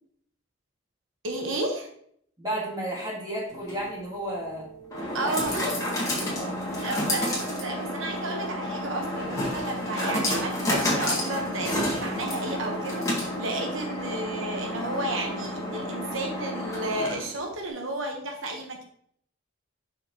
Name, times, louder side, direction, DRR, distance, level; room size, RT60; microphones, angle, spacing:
voice 1, 1.2-1.9 5.1-5.6 6.8-18.8, right 2 dB, 75° right, 2 dB, 1.2 m, -32 dB
voice 2, 2.4-4.7 5.1-5.7 6.1-6.6, right 1 dB, 20° right, -4 dB, 1.9 m, -33 dB
sound 1, 3.5-17.5, left 1 dB, 15° left, 1.8 m, -30 dB
7.3 x 5.7 x 3.0 m, 0.65 s
head